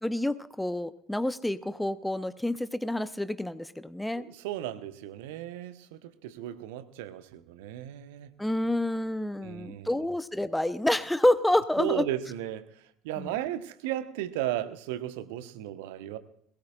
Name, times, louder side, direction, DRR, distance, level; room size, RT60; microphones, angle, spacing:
voice 1, 0.0-4.2 8.4-12.1 13.2-13.3, left 1 dB, 5° left, 14 dB, 0.8 m, -28 dB
voice 2, 4.2-8.3 9.4-10.0 11.8-12.7 13.0-16.2, right 13 dB, 60° right, 10 dB, 1.2 m, -35 dB
22.0 x 18.5 x 2.5 m, 0.67 s
figure-of-eight pair, 65°, 0 cm